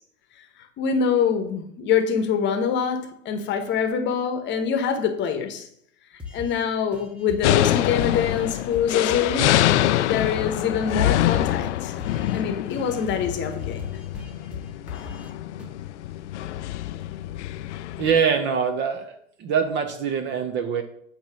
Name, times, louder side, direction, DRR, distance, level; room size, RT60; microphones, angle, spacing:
voice 1, 0.8-5.7 6.3-12.0 12.3-14.0, left 7 dB, 25° left, 1.0 m, -25 dB
sound 1, 6.2-6.6 6.9-9.5 9.8-9.9 10.2-12.4 12.7-15.3 15.6-15.7, left 4 dB, 5° right, 1.2 m, -39 dB
sound 2, 7.4-18.2, left 13 dB, 60° left, 0.5 m, -25 dB
voice 2, 18.0-20.8, right 6 dB, 30° right, 0.7 m, -24 dB
8.7 x 3.0 x 6.1 m
hypercardioid pair, 110°, 40 cm